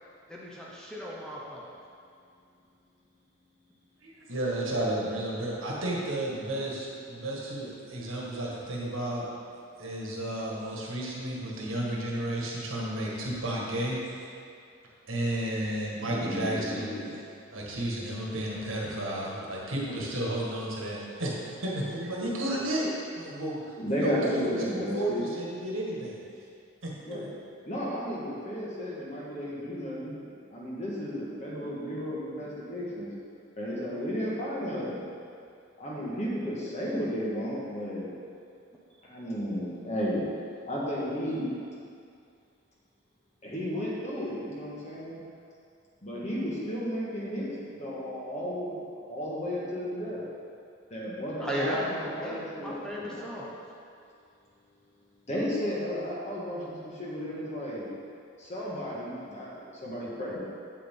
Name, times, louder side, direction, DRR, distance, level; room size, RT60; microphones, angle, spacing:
voice 1, 0.3-1.6 51.4-53.6, equal, 5° left, -6 dB, 0.8 m, -35 dB
voice 2, 4.0-9.3 9.8-14.0 15.1-17.0 17.5-21.3 21.6-22.9 23.1-23.6 24.0-26.2 26.8-27.3, right 1 dB, 80° right, -4 dB, 1.7 m, -32 dB
voice 3, 15.9-17.1 23.8-25.2 27.0-27.2 27.7-30.2 30.5-33.1 33.6-35.0 35.8-38.1 39.0-40.3 40.7-41.5 43.4-45.2 46.0-50.2 50.9-53.3 55.3-57.9 58.4-60.4, equal, 35° left, -6 dB, 1.7 m, -33 dB
8.4 x 7.4 x 3.8 m, 2.4 s
head